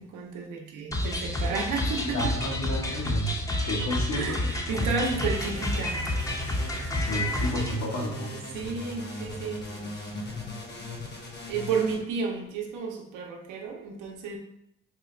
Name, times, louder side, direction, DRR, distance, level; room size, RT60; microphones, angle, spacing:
voice 1, 0.0-2.3 4.1-6.1 8.3-9.9 11.5-14.4, right 5 dB, 90° right, 1 dB, 0.7 m, -32 dB
sound 1, 0.9-7.7, left 1 dB, 10° left, 0.5 m, -29 dB
voice 2, 2.0-5.0 6.9-8.3 10.1-10.4, equal, 65° left, -2 dB, 1.2 m, -32 dB
sound 2, 5.1-12.0, left 1 dB, 35° left, 1.0 m, -39 dB
3.8 x 2.3 x 3.1 m, 0.78 s
cardioid pair, 90°, 30 cm